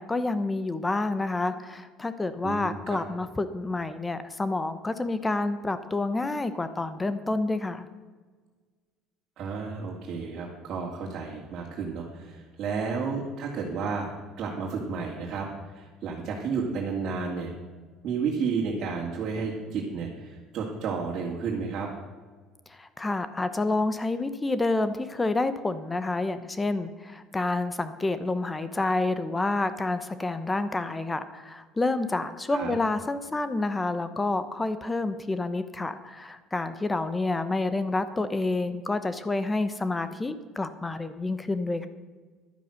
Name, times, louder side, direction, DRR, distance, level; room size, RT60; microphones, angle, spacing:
voice 1, 0.0-7.9 22.7-41.9, left 2 dB, 15° left, 12 dB, 0.8 m, -28 dB
voice 2, 2.4-3.0 9.4-14.1 14.4-17.5 18.0-21.9 32.5-32.7, right 5 dB, 55° right, -3 dB, 2.4 m, -32 dB
11.5 x 9.3 x 6.5 m, 1.4 s
supercardioid pair, 100°, 0 cm